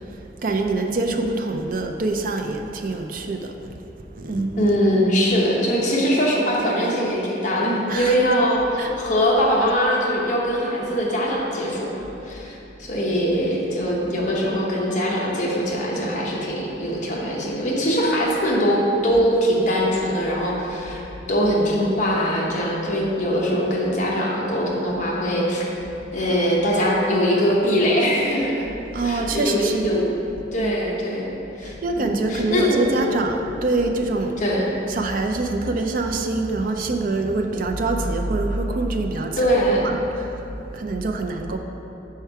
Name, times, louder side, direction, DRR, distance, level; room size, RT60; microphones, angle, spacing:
voice 1, 0.1-3.5 4.1-4.7 7.9-8.2 8.8-9.0 26.2-26.3 28.9-30.0 30.6-30.7 31.0-31.2 31.6-34.4 34.9-40.4 40.7-41.6, right 2 dB, 50° right, 4 dB, 0.4 m, -25 dB
voice 2, 4.6-21.0 21.3-25.7 26.1-28.5 29.0-30.1 30.5-31.3 31.6-33.0 34.4-34.7 39.4-39.9, equal, 45° left, -3 dB, 1.0 m, -22 dB
4.7 x 4.4 x 5.7 m, 3.0 s
head